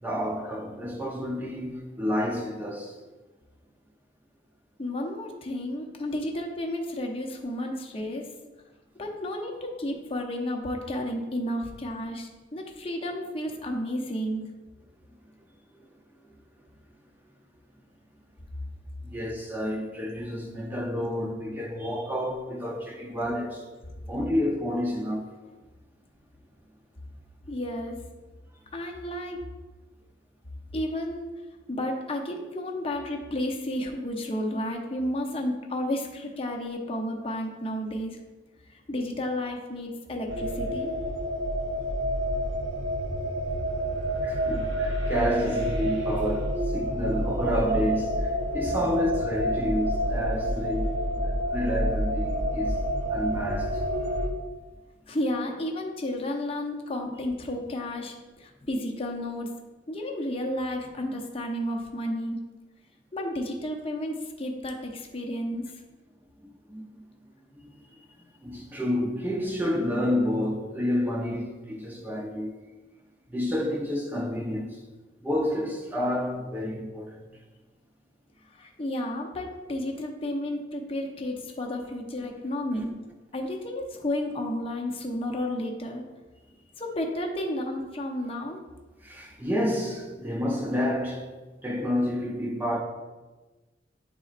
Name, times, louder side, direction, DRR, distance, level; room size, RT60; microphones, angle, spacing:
voice 1, 0.0-3.0 15.8-15.9 19.0-23.7 24.1-25.3 44.2-52.8 53.1-53.9 65.3-65.4 66.4-66.8 67.6-67.7 68.4-72.5 73.3-74.8 75.2-77.3 89.0-91.4 91.6-92.8, left 1 dB, 10° right, 0.6 m, -29 dB
voice 2, 4.8-8.3 9.0-14.5 27.5-28.0 28.7-29.4 30.7-31.3 31.7-38.2 38.7-41.0 55.1-59.5 59.9-62.4 63.1-65.6 78.5-82.9 83.3-86.0 86.8-88.6, left 1 dB, 30° left, 0.7 m, -32 dB
sound 1, 40.3-54.3, equal, 85° right, 1.1 m, -28 dB
10.0 x 4.1 x 2.5 m
head